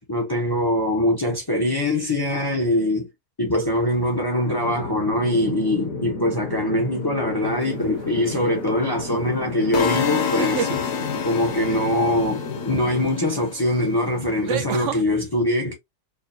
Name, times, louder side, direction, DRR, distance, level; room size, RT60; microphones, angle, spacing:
voice 1, 0.1-3.1 3.4-10.9 11.2-15.7, left 1 dB, 25° left, 0.5 m, -23 dB
sound 1, 4.5-13.1, left 3 dB, 60° left, 1.5 m, -32 dB
sound 2, 7.6-8.0 10.2-10.8 13.1-13.2 14.5-15.0, right 10 dB, 65° right, 0.7 m, -28 dB
sound 3, 9.7-13.8, left 8 dB, 75° left, 1.2 m, -29 dB
4.5 x 2.2 x 2.6 m
omnidirectional pair, 1.7 m